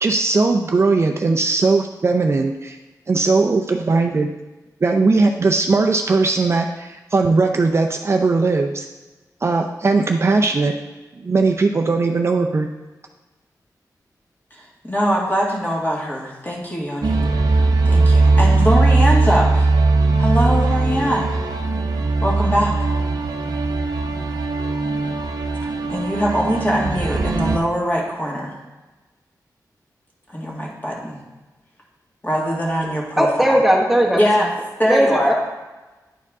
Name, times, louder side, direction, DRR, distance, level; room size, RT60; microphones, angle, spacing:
voice 1, 0.0-2.8 3.1-4.3 4.8-8.9 9.4-10.7 11.1-12.7, right 3 dB, 40° right, 3 dB, 0.5 m, -18 dB
voice 2, 14.5-17.2 17.5-19.7 20.2-21.4 22.2-22.7 25.9-28.5 30.3-31.2 32.2-33.6 34.2-34.5 34.8-35.3, equal, 25° left, -3 dB, 1.9 m, -22 dB
sound 1, 17.0-27.6, right 3 dB, 75° right, 0.7 m, -19 dB
voice 3, 33.2-34.2 34.8-35.3, equal, 5° right, -1 dB, 1.1 m, -17 dB
10.0 x 4.5 x 3.6 m, 1.2 s
wide cardioid pair, 105°, 7 cm